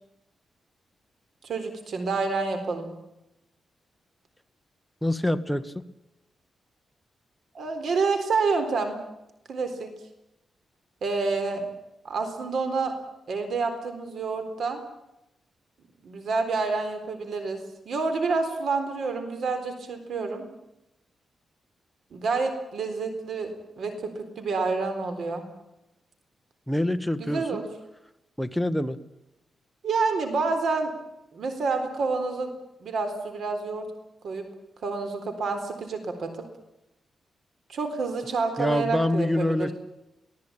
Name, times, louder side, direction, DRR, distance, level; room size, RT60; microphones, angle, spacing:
voice 1, 1.4-2.9 7.5-9.0 9.5-9.9 11.0-11.7 12.0-12.9 13.3-14.8 16.0-20.5 22.1-25.4 27.2-27.7 29.8-30.9 31.3-32.5 32.8-33.9 34.2-34.4 34.8-36.3 37.7-39.7, right 4 dB, 65° right, 7 dB, 3.9 m, -28 dB
voice 2, 5.0-5.7 26.7-27.7 28.4-29.0 38.6-39.7, left 1 dB, ahead, 7 dB, 1.3 m, -26 dB
24.0 x 18.0 x 8.8 m, 0.89 s
wide cardioid pair, 130°, 0 cm